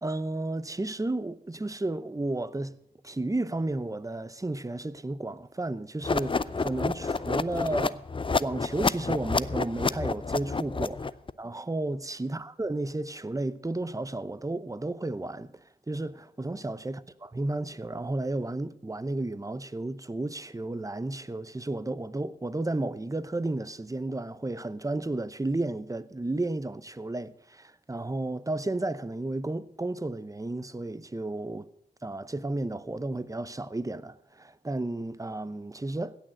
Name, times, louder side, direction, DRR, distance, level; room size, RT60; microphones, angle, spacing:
voice 1, 0.0-2.8 3.0-8.0 8.4-11.1 11.4-31.7 32.0-36.2, right 2 dB, 20° right, 0.7 m, -33 dB
sound 1, 6.0-11.3, left 4 dB, 30° left, 0.5 m, -29 dB
16.5 x 6.4 x 7.6 m
cardioid pair, 45°, 18 cm